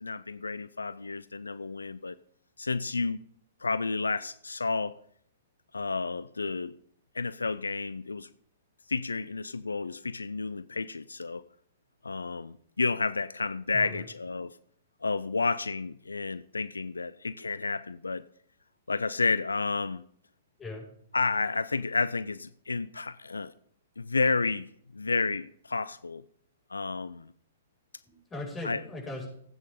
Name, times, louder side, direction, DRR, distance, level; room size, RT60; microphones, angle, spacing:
voice 1, 0.0-2.2 2.6-3.2 3.6-5.0 5.7-6.8 7.1-8.3 8.9-11.4 12.0-14.6 15.0-18.2 18.9-20.0 21.1-23.5 24.0-26.2 26.7-27.3 28.6-28.8, left 4 dB, 85° left, 0.4 m, -31 dB
voice 2, 13.7-14.0 20.6-20.8 28.1-29.3, left 2 dB, 15° left, 6.2 m, -39 dB
17.5 x 9.0 x 3.8 m
figure-of-eight pair, 115°, 0 cm